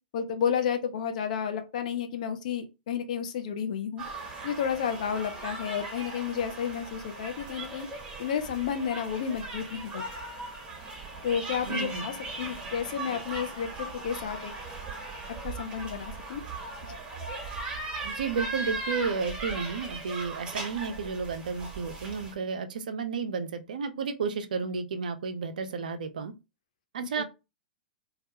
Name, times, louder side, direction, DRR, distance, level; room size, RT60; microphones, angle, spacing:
voice 1, 0.1-4.0 4.4-7.9 8.2-10.1 11.2-14.5 15.4-16.4 27.0-27.2, left 8 dB, 55° left, 0.5 m, -31 dB
sound 1, 4.0-22.3, right 3 dB, 20° right, 0.9 m, -38 dB
voice 2, 11.7-12.0 18.0-26.3 26.9-27.2, right 5 dB, 60° right, 0.4 m, -32 dB
2.2 x 2.1 x 2.7 m
figure-of-eight pair, 100°, 5 cm